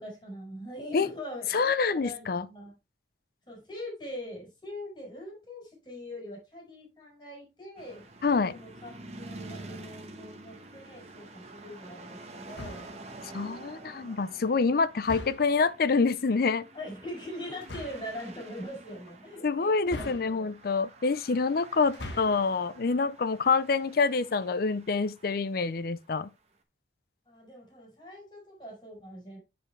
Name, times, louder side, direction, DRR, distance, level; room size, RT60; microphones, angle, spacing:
voice 1, 0.0-2.8 3.5-8.1 8.5-12.9 16.7-20.5 27.3-29.4, left 1 dB, 25° left, 4.8 m, -42 dB
voice 2, 1.5-2.5 8.2-8.5 13.3-16.7 19.4-26.3, left 4 dB, 55° left, 0.5 m, -26 dB
sound 1, 7.8-26.2, right 2 dB, 40° right, 1.1 m, -48 dB
sound 2, 12.5-13.1 15.0-15.7 17.6-18.1 19.9-20.7 21.8-22.5, left 1 dB, 75° left, 1.4 m, -41 dB
8.9 x 5.1 x 3.2 m
head